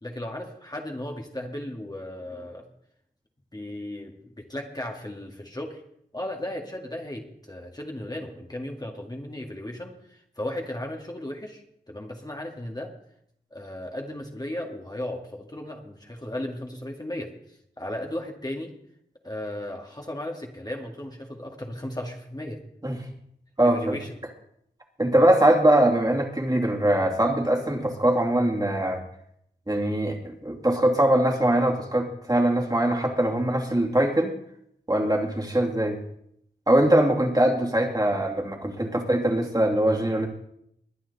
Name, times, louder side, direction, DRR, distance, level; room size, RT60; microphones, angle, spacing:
voice 1, 0.0-2.7 3.5-5.8 6.1-12.9 13.5-18.7 19.2-22.6 23.6-24.3 35.5-35.7, left 1 dB, 20° left, 1 dB, 1.9 m, -36 dB
voice 2, 23.6-24.0 25.0-29.0 29.7-34.4 34.9-36.0 36.7-40.3, right 1 dB, 20° right, 1 dB, 2.6 m, -22 dB
21.5 x 9.1 x 4.1 m, 0.73 s
wide cardioid pair, 55°, 17 cm